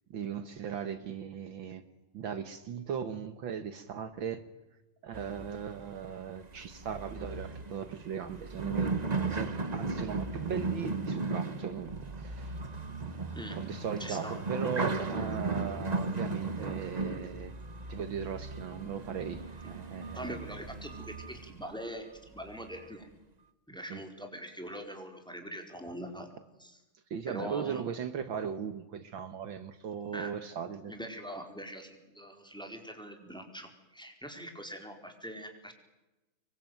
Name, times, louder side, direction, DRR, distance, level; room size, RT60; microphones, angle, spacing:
voice 1, 0.1-1.8 2.1-4.5 5.0-8.9 9.3-12.6 13.6-17.5 17.9-20.4 23.9-24.0 27.1-30.9, right 7 dB, 65° right, 11 dB, 2.0 m, -38 dB
sound 1, 5.1-21.8 22.4-22.9, right 3 dB, 25° right, 1.1 m, -36 dB
voice 2, 14.0-14.4 20.1-23.1 23.7-26.3 26.6-26.8 27.3-27.8 30.1-30.3 30.9-35.7, equal, ahead, 4 dB, 4.2 m, -43 dB
26.5 x 23.0 x 9.3 m, 1.0 s
omnidirectional pair, 2.4 m